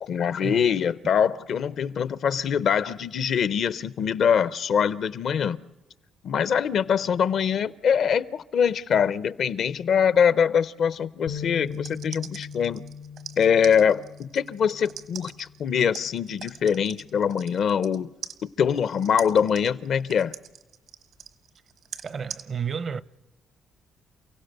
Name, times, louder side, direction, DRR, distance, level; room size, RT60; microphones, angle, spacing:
voice 1, 0.0-5.6 6.2-12.8 13.4-18.1 18.4-20.3, left 7 dB, 65° left, 0.6 m, -23 dB
sound 1, 11.3-17.5, left 7 dB, 80° left, 1.0 m, -41 dB
sound 2, 11.7-18.0 18.2-22.4, right 8 dB, 80° right, 1.3 m, -42 dB
voice 2, 22.0-23.0, right 6 dB, 50° right, 0.6 m, -31 dB
29.0 x 16.5 x 6.7 m
cardioid pair, 90°, 0 cm